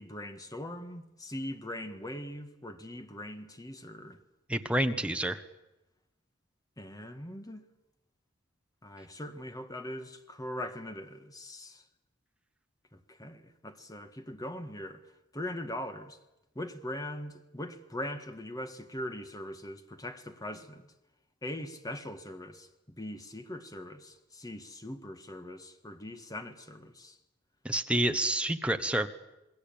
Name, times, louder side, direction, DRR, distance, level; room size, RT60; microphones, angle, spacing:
voice 1, 0.0-4.2 6.8-7.6 8.8-11.8 12.9-15.0 15.3-16.2 16.5-20.8 21.4-22.7 23.0-27.2, left 1 dB, 20° left, 1.7 m, -41 dB
voice 2, 4.5-5.4 27.6-29.1, right 1 dB, 5° right, 1.2 m, -28 dB
27.5 x 20.5 x 8.8 m
head